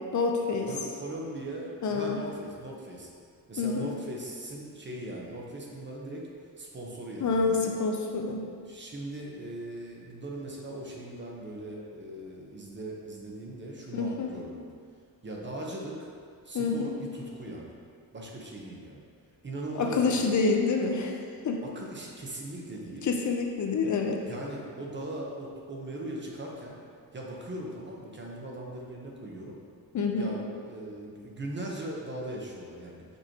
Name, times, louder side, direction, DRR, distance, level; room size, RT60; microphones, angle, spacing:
voice 1, 0.1-0.7 1.8-2.2 3.6-3.9 7.2-8.5 13.9-14.3 16.5-17.0 19.8-21.1 21.4-21.6 23.0-24.2 29.9-30.3, left 4 dB, 50° left, 2 dB, 0.6 m, -27 dB
voice 2, 0.7-3.1 3.5-6.3 6.6-7.7 8.7-14.6 15.2-16.1 16.4-17.7 18.1-19.0 19.4-20.4 21.6-23.1 24.2-26.8 27.1-29.6 30.1-33.0, right 1 dB, 30° right, -2 dB, 0.9 m, -39 dB
6.1 x 5.4 x 2.9 m, 2.1 s
cardioid pair, 115°, 37 cm